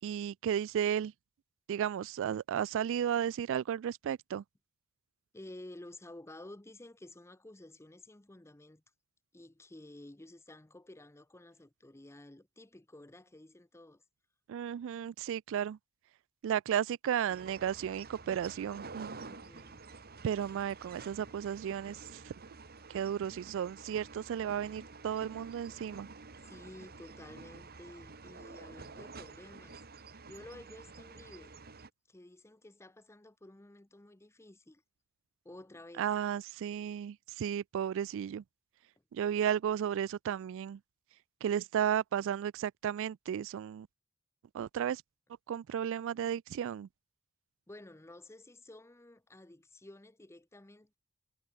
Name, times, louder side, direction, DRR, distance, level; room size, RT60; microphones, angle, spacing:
voice 1, 0.0-1.1 1.7-4.4 14.5-15.8 16.4-19.1 20.2-22.3 22.9-26.1 36.0-38.4 39.1-40.8 41.4-43.9 44.5-45.0 45.5-46.9, right 9 dB, 65° right, 0.3 m, -34 dB
voice 2, 5.3-8.8 9.3-14.0 19.1-19.9 26.4-29.8 30.3-31.6 32.1-34.8 35.4-36.1 47.7-50.9, left 1 dB, 15° left, 0.8 m, -52 dB
sound 1, 17.3-31.9, right 4 dB, 45° right, 1.9 m, -50 dB
head